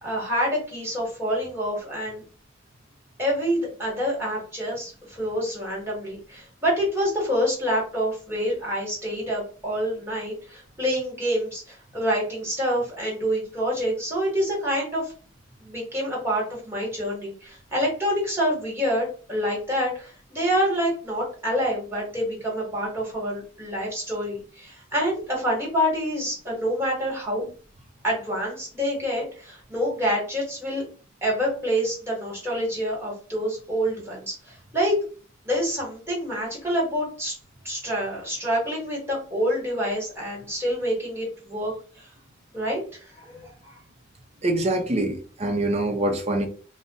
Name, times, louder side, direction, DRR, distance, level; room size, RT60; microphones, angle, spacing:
voice 1, 0.0-2.2 3.2-15.1 15.6-27.4 28.0-30.8 31.2-35.0 35.4-37.3 37.6-42.1 42.5-42.8 43.2-43.8, equal, 15° right, 1.3 m, -27 dB
voice 2, 44.4-46.5, right 1 dB, 30° right, 0.5 m, -24 dB
2.4 x 2.1 x 3.7 m
head